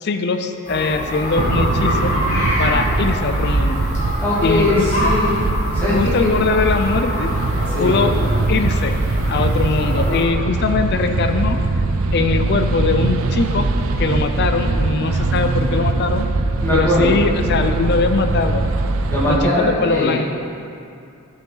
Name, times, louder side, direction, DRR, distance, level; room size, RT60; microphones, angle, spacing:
voice 1, 0.0-2.1 2.6-3.8 4.4-4.7 5.0-5.1 5.9-7.3 7.8-8.1 8.5-8.9 9.3-11.6 12.1-13.7 14.0-16.3 16.7-18.6 19.5-20.3, left 4 dB, 50° left, 7 dB, 0.4 m, -21 dB
sound 1, 0.6-10.2, equal, 35° left, 1.9 m, -26 dB
sound 2, 1.4-19.4, right 2 dB, 75° right, 0.5 m, -21 dB
voice 2, 4.2-5.3 5.7-6.3 7.7-7.9 16.6-17.2 19.1-20.2, left 1 dB, 10° left, -9 dB, 2.3 m, -20 dB
12.0 x 5.7 x 3.9 m, 2.5 s
head